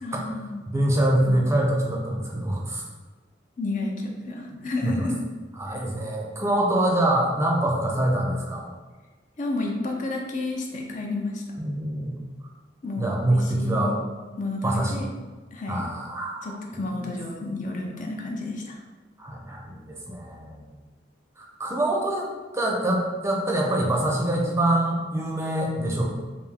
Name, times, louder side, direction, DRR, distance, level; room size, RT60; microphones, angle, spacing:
voice 1, 0.0-0.7 1.2-1.4 3.6-5.1 5.7-5.8 9.4-11.4 12.8-14.0 14.4-15.1 15.5-15.9 16.4-18.8, left 2 dB, 45° left, 1 dB, 0.5 m, -31 dB
voice 2, 0.7-2.8 4.8-5.1 5.6-8.6 11.6-12.2 13.0-13.9 14.6-15.0 15.7-16.8 19.2-20.6 21.4-22.3 22.5-26.1, right 1 dB, 15° right, -2 dB, 0.5 m, -25 dB
3.4 x 2.6 x 3.5 m, 1.3 s
head